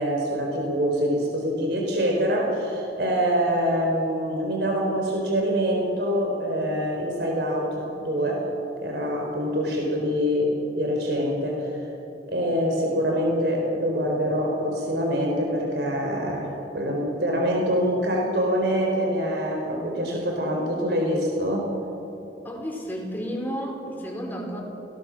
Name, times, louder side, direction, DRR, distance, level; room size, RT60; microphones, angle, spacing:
voice 1, 0.0-8.5 8.8-11.8 12.3-21.7, equal, 70° right, 0 dB, 4.1 m, -25 dB
voice 2, 22.4-24.6, equal, 10° left, -1 dB, 4.7 m, -32 dB
29.0 x 19.5 x 6.4 m, 2.9 s
head